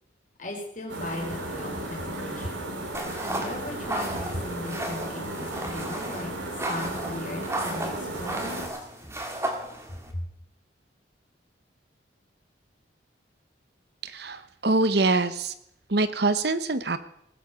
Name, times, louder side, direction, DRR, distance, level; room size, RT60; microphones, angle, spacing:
voice 1, 0.4-2.6 3.0-6.3 6.7-8.6 10.1-10.2, left 1 dB, 40° left, 0 dB, 4.7 m, -38 dB
sound 1, 0.9-8.7, right 1 dB, 85° right, 3.5 m, -34 dB
sound 2, 2.9-10.1, right 1 dB, 15° right, 2.1 m, -34 dB
voice 2, 14.0-15.5 15.9-17.0, right 3 dB, 60° right, 13 dB, 0.9 m, -24 dB
19.0 x 8.6 x 7.0 m, 0.75 s
head